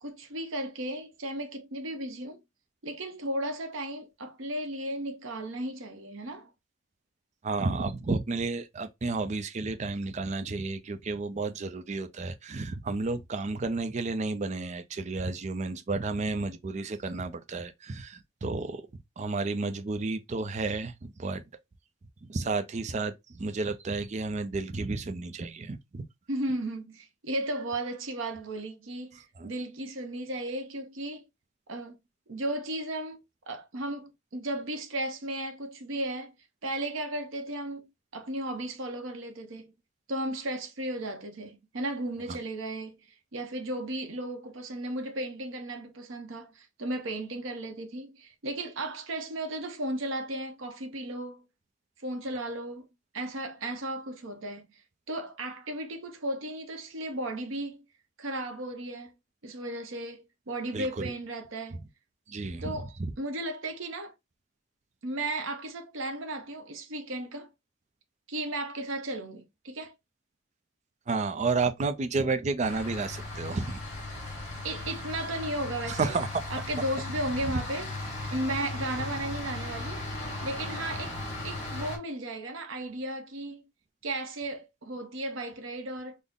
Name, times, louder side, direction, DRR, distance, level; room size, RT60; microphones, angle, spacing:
voice 1, 0.0-2.4 2.8-6.5 26.3-31.2 31.7-32.0 32.3-36.3 36.6-39.7 40.1-43.1 43.3-51.4 52.0-52.9 53.1-54.8 55.1-57.8 58.2-59.1 59.4-61.8 62.6-64.1 65.0-67.5 68.3-69.9 74.6-76.2 76.5-77.9 78.3-80.1 80.4-81.1 81.4-83.7 84.0-86.2, right 1 dB, 90° right, 0.8 m, -35 dB
voice 2, 7.4-18.8 19.2-21.4 22.2-26.1 29.4-29.5 42.3-42.4 60.7-61.1 62.3-63.1 71.1-73.8 75.9-76.3, right 3 dB, 35° right, 0.4 m, -31 dB
sound 1, 72.6-82.0, left 2 dB, 35° left, 1.9 m, -37 dB
3.8 x 2.0 x 3.5 m
head